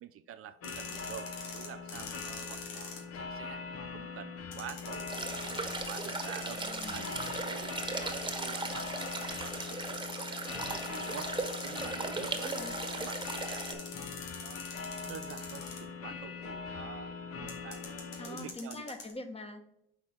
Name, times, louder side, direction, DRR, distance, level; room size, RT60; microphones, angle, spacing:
voice 1, 0.0-3.6 3.9-11.3 11.6-14.2 14.4-19.0, right 9 dB, 50° right, 11 dB, 0.5 m, -48 dB
sound 1, 0.6-3.0 4.5-7.4 7.9-11.8 12.2-16.0 17.5-19.1, left 5 dB, 85° left, 1.4 m, -45 dB
sound 2, 0.6-18.5, left 5 dB, 50° left, 0.9 m, -42 dB
sound 3, 5.1-13.7, right 3 dB, 15° right, 1.3 m, -38 dB
voice 2, 6.5-7.1 12.3-12.7 18.2-19.7, left 2 dB, 20° left, 6 dB, 1.2 m, -44 dB
5.9 x 4.1 x 4.4 m, 0.78 s
supercardioid pair, 65°, 29 cm